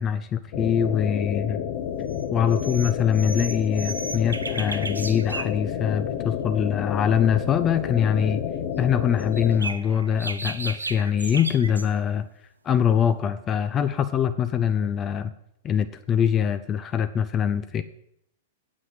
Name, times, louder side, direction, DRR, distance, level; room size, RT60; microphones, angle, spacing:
voice 1, 0.0-1.6 2.3-8.4 8.8-12.3 12.6-15.3 15.6-17.8, left 8 dB, 25° left, 12 dB, 0.5 m, -23 dB
sound 1, 0.5-9.6, left 9 dB, 50° left, 0.9 m, -30 dB
sound 2, 2.1-2.2 2.5-5.6 9.2-11.9, right 3 dB, 85° right, 0.7 m, -34 dB
7.9 x 6.1 x 7.6 m, 0.77 s
figure-of-eight pair, 100°, 0 cm